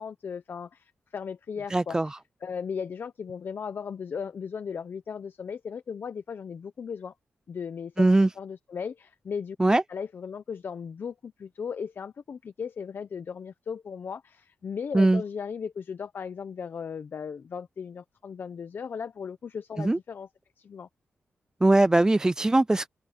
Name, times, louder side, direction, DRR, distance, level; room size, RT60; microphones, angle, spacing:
voice 1, 0.0-2.1 2.4-7.1 7.5-8.1 8.4-9.6 9.9-20.3 20.6-20.9, left 6 dB, 60° left, 0.8 m, -36 dB
voice 2, 1.7-2.1 8.0-8.3 9.6-9.8 14.9-15.2 19.8-20.0 21.6-22.9, right 2 dB, 15° right, 0.4 m, -21 dB
open air
cardioid pair, 85°, 4 cm